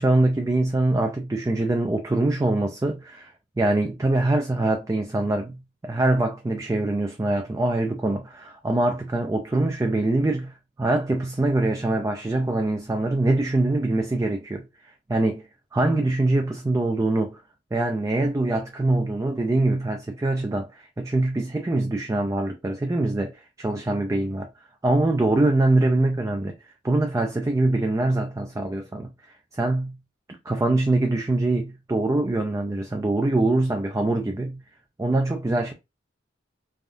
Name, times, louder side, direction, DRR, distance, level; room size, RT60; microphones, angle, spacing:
voice 1, 0.0-5.6 5.8-10.5 10.8-14.6 15.1-15.4 15.7-17.4 17.7-24.5 24.8-26.5 26.8-29.1 29.5-30.0 30.5-34.6 35.0-35.7, right 2 dB, 15° right, 0.3 m, -23 dB
3.4 x 2.3 x 2.5 m
head